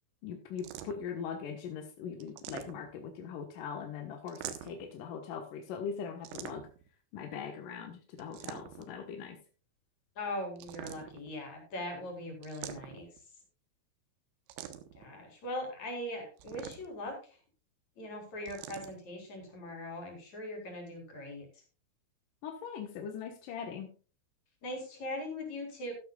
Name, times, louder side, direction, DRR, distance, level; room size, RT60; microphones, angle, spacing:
voice 1, 0.2-6.7 7.1-9.4 22.4-23.9, left 7 dB, 70° left, 4 dB, 2.1 m, -41 dB
sound 1, 0.6-1.2 2.2-3.1 4.3-4.9 6.2-6.9 8.2-9.0 10.6-11.3 12.4-13.2 14.5-15.0 16.4-17.1 18.5-18.9, right 11 dB, 85° right, 3.7 m, -45 dB
voice 2, 10.2-13.1 14.9-17.4 18.0-21.5 24.6-25.9, left 1 dB, 40° left, 3 dB, 4.8 m, -40 dB
13.0 x 12.5 x 2.3 m, 0.36 s
omnidirectional pair, 5.6 m